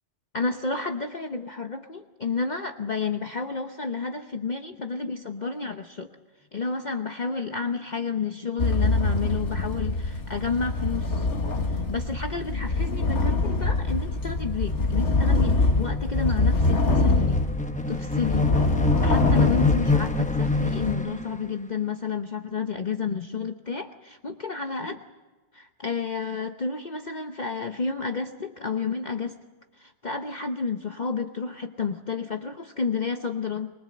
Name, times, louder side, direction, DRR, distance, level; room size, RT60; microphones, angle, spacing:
voice 1, 0.3-6.1 6.5-11.3 11.7-17.4 17.9-18.5 19.0-25.0 25.5-29.4 29.8-33.7, left 4 dB, 40° left, 5 dB, 1.0 m, -31 dB
sound 1, 8.6-20.9, left 2 dB, 75° left, 2.0 m, -24 dB
sound 2, 12.1-21.4, left 4 dB, 5° left, 0.9 m, -28 dB
23.5 x 22.0 x 7.7 m, 1.3 s
omnidirectional pair, 1.2 m